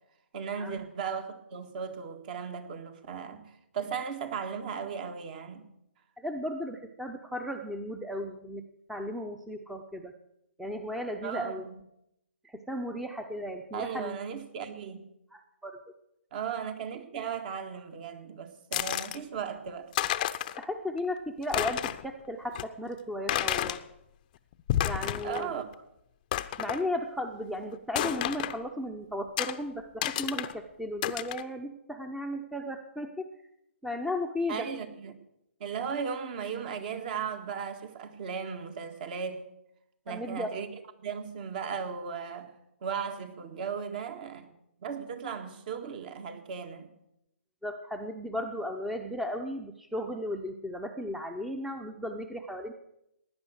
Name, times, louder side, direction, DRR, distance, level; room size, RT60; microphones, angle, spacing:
voice 1, 0.3-5.7 11.2-11.8 13.7-15.1 16.3-19.9 25.2-25.7 34.5-35.2 35.6-39.5 40.0-40.7 41.0-42.5 42.8-44.5 44.8-46.9, right 7 dB, 45° right, 1.7 m, -36 dB
voice 2, 6.2-8.6 8.9-10.1 10.6-11.6 12.4-14.1 15.3-15.8 20.6-23.8 24.8-25.5 26.6-33.2 33.8-34.7 40.1-40.5 47.6-52.7, left 1 dB, ahead, 0.8 m, -35 dB
sound 1, 18.7-19.2 19.7-19.8 19.9-20.6 21.0-21.1 21.4-22.1 22.5-22.6 23.3-23.8 24.5-25.5 25.7-25.8 26.3-26.8 27.9-28.6 29.4-29.5 30.0-30.5 31.0-31.4, left 13 dB, 40° left, 0.7 m, -30 dB
16.5 x 10.0 x 6.5 m
figure-of-eight pair, 135°, 7 cm